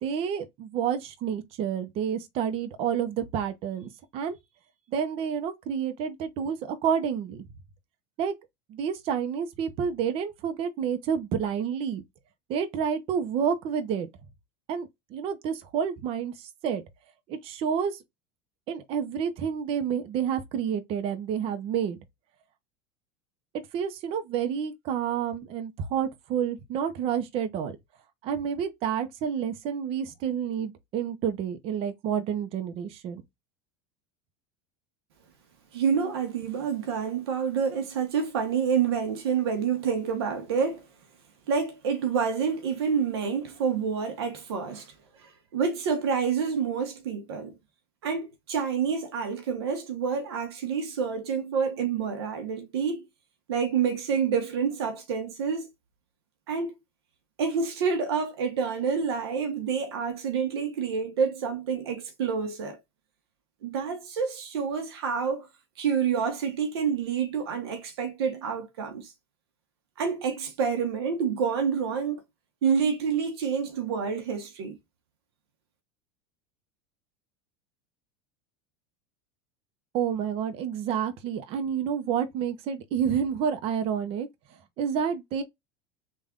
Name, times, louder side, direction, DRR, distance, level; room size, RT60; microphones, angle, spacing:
voice 1, 0.0-4.4 4.9-7.4 8.2-8.3 8.7-12.0 12.5-14.1 14.7-16.8 17.3-18.0 18.7-22.0 23.7-27.8 28.2-33.2 79.9-84.3 84.8-85.4, right 8 dB, 50° right, 0.8 m, -29 dB
voice 2, 35.7-40.9 41.5-47.6 48.0-53.1 53.5-55.7 56.5-56.7 57.4-62.8 63.6-65.5 65.8-69.1 70.0-72.2 72.6-74.8, right 6 dB, 85° right, 1.0 m, -28 dB
3.5 x 2.5 x 3.6 m
supercardioid pair, 120°, 13 cm